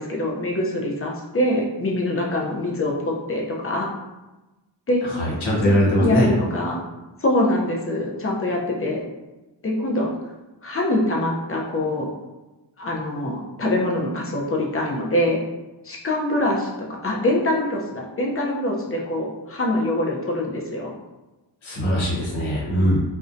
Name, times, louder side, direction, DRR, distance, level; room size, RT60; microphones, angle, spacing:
voice 1, 0.0-3.9 4.9-5.0 6.0-6.8 7.2-9.0 9.6-10.1 10.6-12.1 12.8-15.4 15.8-20.9, left 1 dB, 30° left, -2 dB, 0.5 m, -24 dB
voice 2, 5.2-6.3 21.6-23.0, equal, 80° left, -4 dB, 0.9 m, -21 dB
2.6 x 2.1 x 2.5 m, 1.1 s
wide cardioid pair, 75°, 47 cm